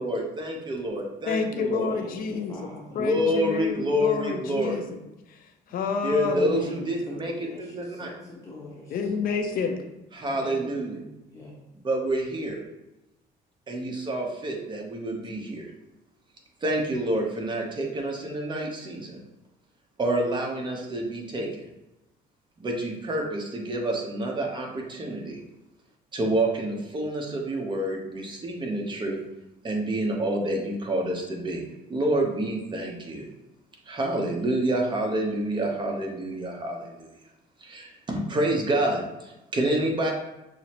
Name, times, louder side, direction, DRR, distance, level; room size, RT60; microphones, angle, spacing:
voice 1, 0.0-1.9 3.0-4.8 6.0-7.3 7.8-8.1 10.1-11.0 11.8-12.6 13.7-15.7 16.6-19.2 20.0-21.7 22.6-25.4 26.1-29.2 29.6-31.6 31.9-33.2 33.9-37.1 37.6-40.1, right 1 dB, 25° right, 0 dB, 0.8 m, -28 dB
voice 2, 1.3-2.5 3.0-5.0 5.3-5.4 5.7-6.7 8.9-9.8, left 5 dB, 55° left, 5 dB, 0.5 m, -29 dB
voice 3, 1.9-3.0 6.5-9.0 10.3-11.6, left 2 dB, 20° left, -5 dB, 0.8 m, -43 dB
6.0 x 2.1 x 2.9 m, 0.96 s
cardioid pair, 110°, 17 cm